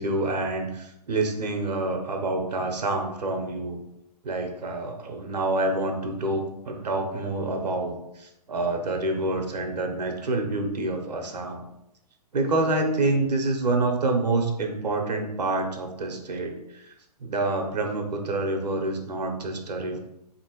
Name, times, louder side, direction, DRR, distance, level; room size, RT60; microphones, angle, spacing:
voice 1, 0.0-3.8 4.2-11.6 12.3-16.9 17.2-20.0, right 2 dB, 85° right, 4 dB, 0.8 m, -27 dB
3.6 x 2.9 x 2.9 m, 0.82 s
hypercardioid pair, 135°, 21 cm